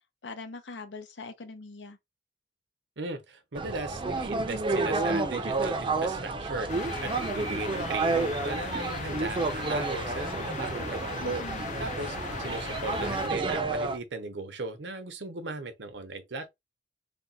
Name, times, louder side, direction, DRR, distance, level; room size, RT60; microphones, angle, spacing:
voice 1, 0.2-2.0 11.2-11.7, left 3 dB, 85° left, 0.8 m, -42 dB
voice 2, 3.0-11.4 11.8-16.5, right 3 dB, 75° right, 0.8 m, -37 dB
sound 1, 3.6-14.0, right 3 dB, 30° right, 0.5 m, -30 dB
sound 2, 6.7-13.3, left 6 dB, 45° left, 0.4 m, -38 dB
3.4 x 2.3 x 4.1 m
head